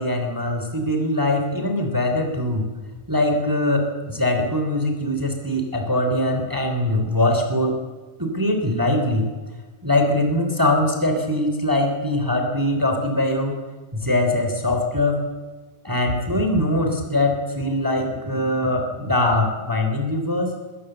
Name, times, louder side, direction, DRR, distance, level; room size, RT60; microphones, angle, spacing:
voice 1, 0.0-2.7 3.1-7.8 8.2-9.3 9.8-13.5 13.9-15.2 15.8-20.5, left 1 dB, 5° right, 4 dB, 2.7 m, -22 dB
20.5 x 18.0 x 7.9 m, 1.3 s
omnidirectional pair, 3.9 m